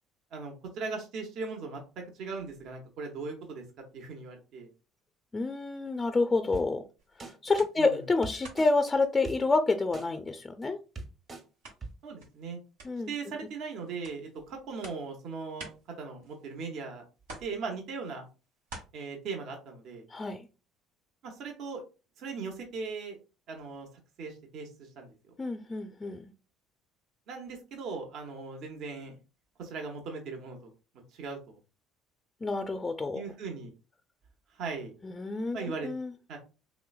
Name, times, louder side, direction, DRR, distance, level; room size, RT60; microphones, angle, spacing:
voice 1, 0.3-3.6 3.9-4.7 7.8-8.0 12.0-12.6 13.1-15.7 16.0-17.0 17.4-18.3 18.9-20.0 21.2-21.8 22.2-23.2 23.5-23.9 24.2-25.1 27.3-29.2 29.6-30.7 31.1-31.6 33.1-33.7 34.5-34.9 35.5-35.9 36.3-36.4, right 4 dB, 65° right, 2 dB, 0.8 m, -39 dB
voice 2, 5.3-6.8 7.2-10.8 12.8-13.1 20.1-20.4 25.4-26.2 32.4-33.2 35.0-36.1, left 3 dB, 25° left, 7 dB, 0.4 m, -28 dB
sound 1, 6.5-6.6 7.2-7.3 8.2-8.7 9.2-9.4 9.9-10.0 10.6-10.7 11.0-11.4 11.8-11.9, right 3 dB, 35° right, 1.0 m, -40 dB
sound 2, 7.0-8.1 8.4-10.0 10.3-16.8 17.2-18.8, right 2 dB, 85° right, 1.2 m, -51 dB
3.1 x 3.0 x 2.3 m, 0.32 s
hypercardioid pair, 70°, 0 cm